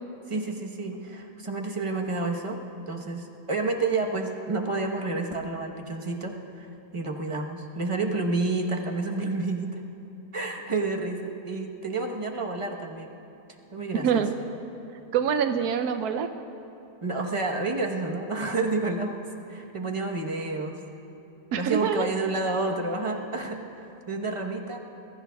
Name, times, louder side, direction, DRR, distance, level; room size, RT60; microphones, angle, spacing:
voice 1, 0.3-6.7 6.9-9.8 10.3-13.1 13.7-14.2 17.0-20.8 21.6-24.8, right 3 dB, 25° right, 2 dB, 0.9 m, -30 dB
voice 2, 14.0-14.3 15.1-16.3 21.5-22.1, right 7 dB, 90° right, 8 dB, 1.2 m, -25 dB
26.0 x 22.0 x 2.3 m, 2.9 s
omnidirectional pair, 1.6 m